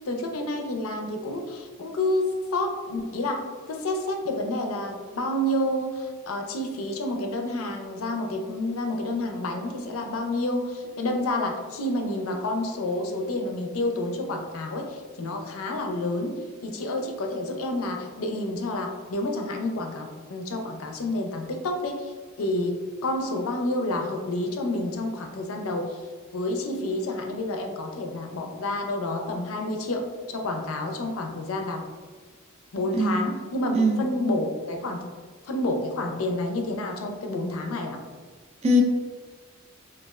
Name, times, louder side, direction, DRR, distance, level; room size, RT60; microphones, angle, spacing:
voice 1, 0.1-26.0 26.3-31.8 32.7-35.1 35.4-38.0, left 1 dB, 80° left, 4 dB, 0.4 m, -29 dB
voice 2, 32.9-33.3 33.8-34.0 38.6-38.8, left 1 dB, 30° right, 2 dB, 0.3 m, -21 dB
3.0 x 2.3 x 2.3 m, 1.5 s
head